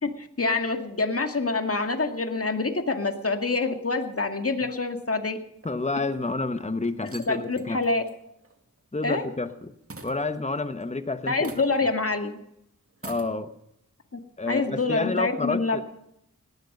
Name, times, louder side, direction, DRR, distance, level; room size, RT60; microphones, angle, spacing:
voice 1, 0.0-5.4 7.3-8.0 9.0-9.3 11.3-12.3 14.1-14.2 14.5-15.8, left 3 dB, 45° left, 6 dB, 2.1 m, -26 dB
voice 2, 5.6-7.8 8.9-9.7 10.0-11.6 13.0-13.5 14.4-15.8, left 3 dB, 20° left, 10 dB, 1.3 m, -29 dB
sound 1, 5.6-6.3 6.8-9.6 9.9-10.9 11.4-12.0 12.2-12.3 12.9-13.3, right 3 dB, 45° right, 2.1 m, -46 dB
18.0 x 12.5 x 5.5 m, 0.77 s
wide cardioid pair, 50°, 32 cm